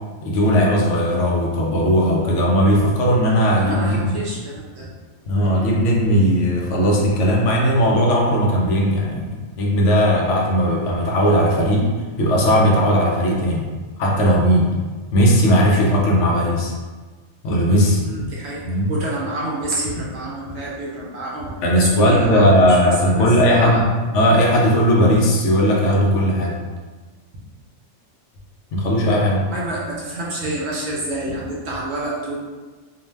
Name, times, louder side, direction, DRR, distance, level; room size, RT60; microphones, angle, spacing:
voice 1, 0.2-4.1 5.3-11.9 12.2-13.6 14.0-14.7 15.1-16.7 17.4-18.1 18.6-18.9 21.6-23.8 24.1-26.6 28.7-29.5, equal, 70° left, -2 dB, 0.9 m, -17 dB
voice 2, 3.6-4.9 5.3-5.5 18.0-18.6 18.9-23.9 27.3-27.4 29.5-32.3, right 2 dB, 65° right, -4 dB, 0.8 m, -28 dB
2.6 x 2.1 x 3.1 m, 1.3 s
omnidirectional pair, 1.3 m